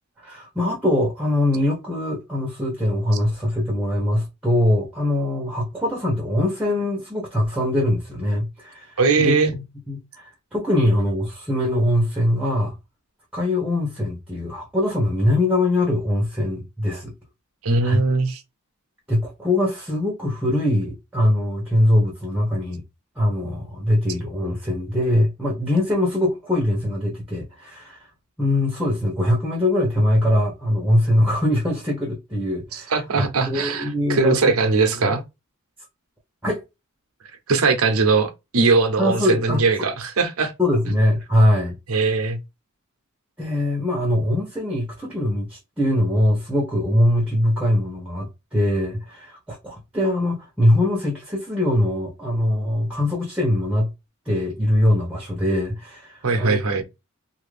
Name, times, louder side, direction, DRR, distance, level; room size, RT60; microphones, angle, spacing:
voice 1, 0.2-9.3 9.9-12.7 13.3-17.1 17.8-18.0 19.1-22.8 23.2-28.0 28.4-34.4 35.0-35.2 36.4-36.6 39.0-39.6 40.6-41.7 43.4-53.9 54.3-56.8, left 1 dB, 5° right, 0.8 m, -22 dB
voice 2, 9.0-9.5 17.6-18.4 32.7-35.2 37.5-40.5 41.9-42.4 56.2-56.8, right 4 dB, 70° right, 0.7 m, -20 dB
2.8 x 2.5 x 3.2 m
head